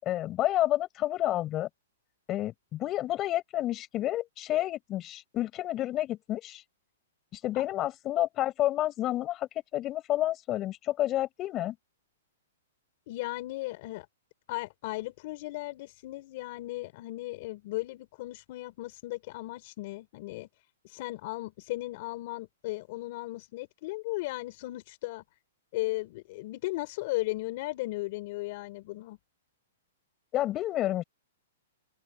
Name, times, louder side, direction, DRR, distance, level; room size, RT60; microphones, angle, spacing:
voice 1, 0.0-1.7 2.3-6.6 7.3-11.8 30.3-31.0, left 14 dB, 20° left, 7.1 m, -30 dB
voice 2, 13.1-14.1 14.5-20.5 20.8-25.2 25.7-29.2, left 20 dB, 35° left, 5.1 m, -36 dB
open air
hypercardioid pair, 170°, 0 cm